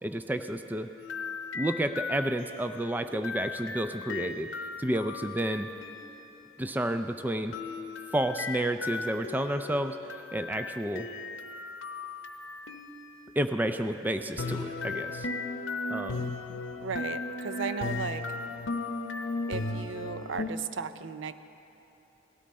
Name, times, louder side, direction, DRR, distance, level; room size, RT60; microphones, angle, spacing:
voice 1, 0.0-0.9 1.5-4.5 4.8-5.7 6.6-7.6 8.1-10.0 10.3-11.1 13.4-15.3 15.9-16.3, right 1 dB, 10° right, 8 dB, 0.3 m, -30 dB
sound 1, 1.0-6.3 7.5-13.3 14.4-20.5, left 3 dB, 80° left, 0.7 m, -36 dB
voice 2, 16.5-18.2 19.5-21.3, right 5 dB, 70° right, 12 dB, 0.5 m, -36 dB
18.0 x 12.5 x 4.2 m, 3.0 s
head